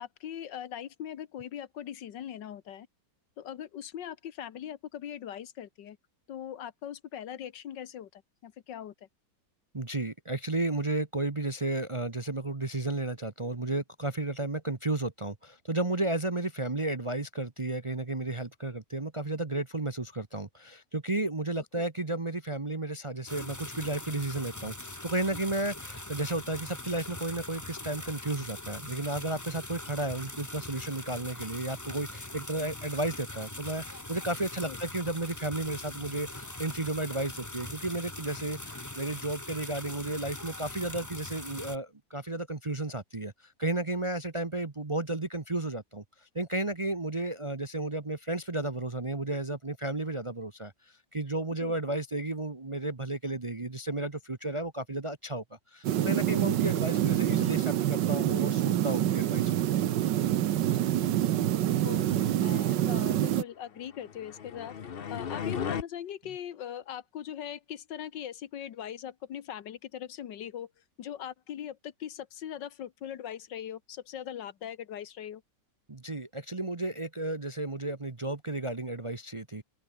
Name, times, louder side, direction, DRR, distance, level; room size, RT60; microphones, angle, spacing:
voice 1, 0.0-2.9 3.4-6.0 6.3-8.9 34.7-34.8 51.5-51.7 60.8-60.9 61.8-64.7 65.1-70.7 71.0-75.4, left 10 dB, 80° left, 1.8 m, -40 dB
voice 2, 9.7-43.3 43.6-46.0 46.3-50.7 51.1-55.4 55.7-59.5 75.9-79.6, right 2 dB, 25° right, 0.8 m, -33 dB
sound 1, 23.3-41.8, left 1 dB, 10° left, 1.6 m, -42 dB
sound 2, 55.8-63.4, right 12 dB, 80° right, 1.6 m, -26 dB
sound 3, 63.9-65.8, left 7 dB, 45° left, 0.8 m, -36 dB
open air
omnidirectional pair, 1.9 m